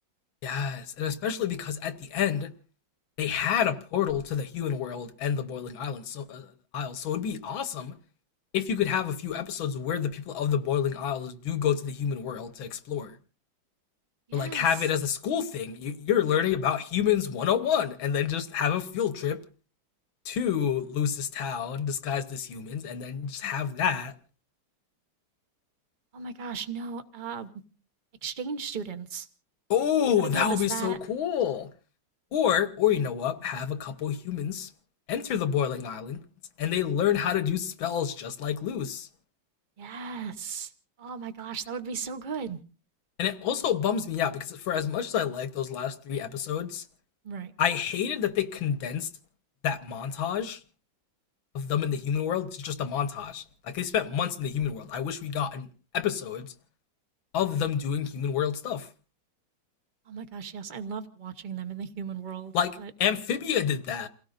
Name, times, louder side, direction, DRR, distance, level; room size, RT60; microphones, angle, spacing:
voice 1, 0.4-2.5 3.2-8.0 8.5-13.1 14.3-19.4 20.2-24.1 29.7-31.7 32.3-34.7 35.1-36.2 36.6-39.1 43.2-46.8 47.6-49.1 49.6-50.6 51.5-55.7 55.9-56.5 57.3-58.9 62.5-64.1, left 8 dB, 85° left, 1.9 m, -28 dB
voice 2, 14.3-14.8 26.1-27.5 28.2-29.3 30.2-31.0 39.8-40.7 41.0-42.6 47.2-47.5 60.1-62.9, right 6 dB, 35° right, 0.9 m, -36 dB
29.0 x 17.0 x 2.6 m
omnidirectional pair, 2.1 m